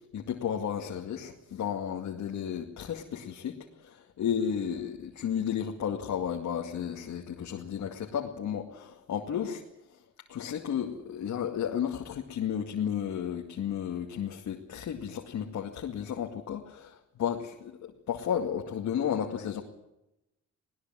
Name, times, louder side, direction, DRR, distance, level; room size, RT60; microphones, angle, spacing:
voice 1, 0.1-9.6 10.3-19.6, left 8 dB, 65° left, 1 dB, 2.3 m, -33 dB
20.5 x 20.0 x 7.6 m, 0.91 s
cardioid pair, 90°, 30 cm